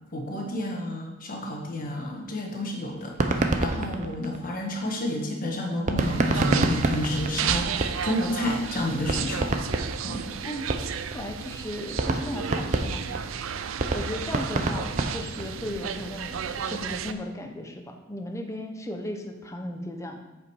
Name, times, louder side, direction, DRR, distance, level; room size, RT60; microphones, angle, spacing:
voice 1, 0.1-9.5 10.0-10.3, left 1 dB, 45° left, 1 dB, 1.4 m, -30 dB
sound 1, 3.0-4.9 5.9-8.3 8.6-8.7 9.0-11.1 11.5-11.6 11.9-15.6, right 2 dB, 40° right, 0.6 m, -27 dB
sound 2, 6.0-17.1, right 7 dB, 90° right, 0.4 m, -33 dB
voice 2, 10.4-13.3 13.9-14.9 15.1-20.2, left 1 dB, 15° left, 3 dB, 0.8 m, -36 dB
8.2 x 5.1 x 4.7 m, 1.0 s
head